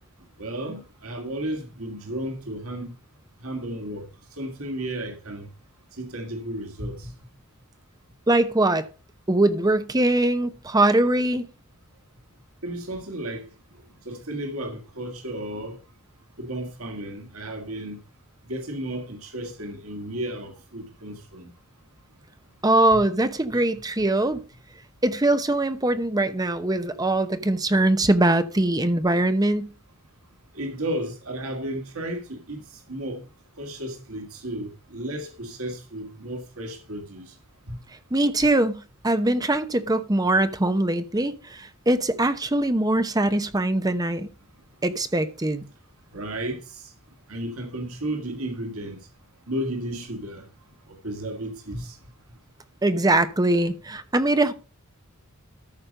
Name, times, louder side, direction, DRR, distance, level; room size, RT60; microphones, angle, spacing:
voice 1, 0.4-2.9 3.4-4.1 4.4-5.5 6.0-7.1 12.6-13.5 14.1-15.8 16.4-18.0 18.5-21.5 22.9-23.0 23.5-23.6 30.5-33.2 33.6-37.4 37.7-37.8 46.1-46.9 47.3-49.0 49.5-50.5 50.9-52.0, right 1 dB, 85° right, 2.0 m, -33 dB
voice 2, 8.3-8.9 9.3-11.5 22.6-24.4 25.0-29.7 38.1-44.3 44.8-45.6 52.8-54.5, right 1 dB, 20° right, 0.9 m, -22 dB
13.5 x 5.3 x 5.2 m
head